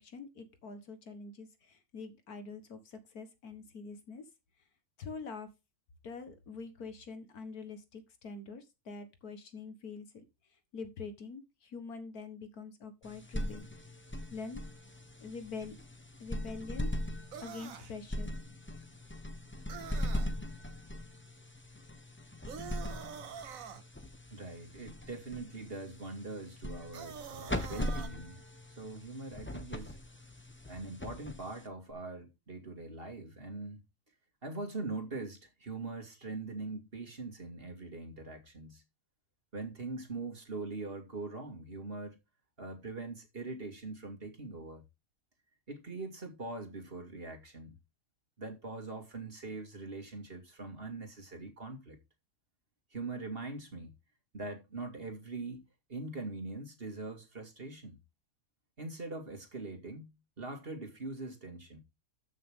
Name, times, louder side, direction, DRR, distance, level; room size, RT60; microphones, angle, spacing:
voice 1, 0.0-4.2 5.0-5.5 6.0-10.1 10.7-13.6 14.3-14.6 15.2-15.7 16.2-16.9 17.4-18.3, left 4 dB, 75° left, 2.0 m, -45 dB
sound 1, 13.0-31.9, left 1 dB, 10° left, 1.0 m, -40 dB
sound 2, 17.3-17.9 19.7-20.3 22.5-23.8 26.9-28.1, right 7 dB, 65° right, 1.3 m, -45 dB
voice 2, 24.3-28.4 28.8-30.0 30.7-33.8 34.4-38.8 39.5-42.2 42.6-44.8 45.7-47.7 48.4-52.0 52.9-53.9 54.3-55.6 55.9-57.9 58.8-61.8, right 3 dB, 35° right, 2.5 m, -42 dB
14.0 x 6.3 x 3.7 m
omnidirectional pair, 1.6 m